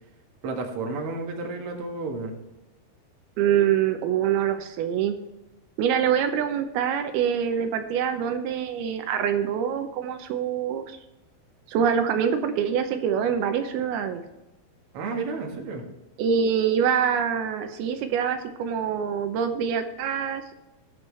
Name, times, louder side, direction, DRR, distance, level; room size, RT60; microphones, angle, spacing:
voice 1, 0.4-2.4 14.9-15.8, right 3 dB, 50° right, 2 dB, 1.9 m, -31 dB
voice 2, 3.4-5.2 5.8-11.0 11.7-14.2 16.2-20.5, right 8 dB, 80° right, 7 dB, 2.7 m, -25 dB
19.0 x 6.3 x 3.2 m, 0.99 s
omnidirectional pair, 4.6 m